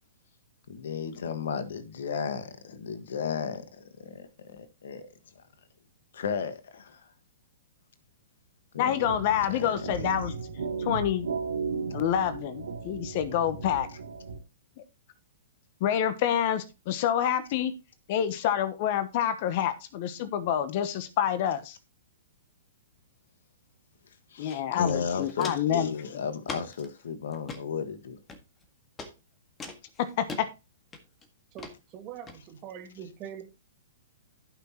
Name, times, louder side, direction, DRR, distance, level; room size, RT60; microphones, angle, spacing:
voice 1, 0.7-5.0 5.3-5.4 6.1-7.1 8.7-9.0 9.5-10.1 24.3-28.2, left 6 dB, 70° left, 1.5 m, -34 dB
voice 2, 8.8-10.3 10.8-11.3 11.9-13.9 15.8-17.7 18.1-21.8 24.4-25.9 30.0-30.5, left 10 dB, 50° left, 1.1 m, -27 dB
sound 1, 9.0-14.4, right 5 dB, 80° right, 2.3 m, -35 dB
Walk footsteps, 24.5-24.6 24.9-25.8 26.4-26.9 27.3-27.6 28.3-28.6 29.0-29.1 29.6-30.4 30.9-31.2 31.6-31.7 32.3-32.4, left 3 dB, 15° left, 1.8 m, -40 dB
voice 3, 31.5-33.4, right 9 dB, 35° right, 2.4 m, -43 dB
15.5 x 6.0 x 2.9 m
hypercardioid pair, 120°, 0 cm